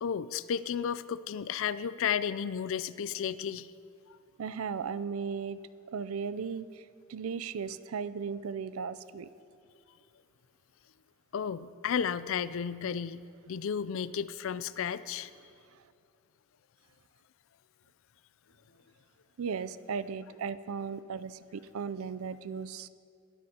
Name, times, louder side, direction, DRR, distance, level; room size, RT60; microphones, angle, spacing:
voice 1, 0.0-3.7 11.3-15.3, left 7 dB, 65° left, 16 dB, 0.4 m, -33 dB
voice 2, 4.4-5.6 5.9-6.8 7.1-9.3 19.4-22.9, right 6 dB, 80° right, 15 dB, 0.4 m, -36 dB
21.5 x 13.0 x 2.9 m, 2.5 s
head